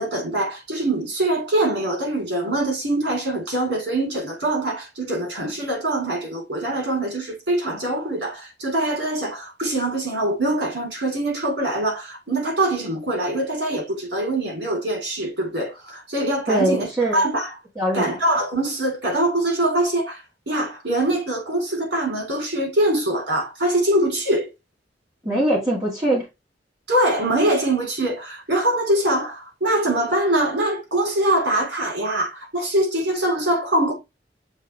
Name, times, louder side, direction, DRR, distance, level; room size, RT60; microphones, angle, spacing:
voice 1, 0.0-17.5 17.9-24.5 26.9-33.9, right 1 dB, 80° right, 4.1 m, -23 dB
voice 2, 16.5-17.2 17.8-18.1 25.2-26.3, right 1 dB, 20° right, 2.3 m, -22 dB
7.3 x 3.7 x 3.5 m
head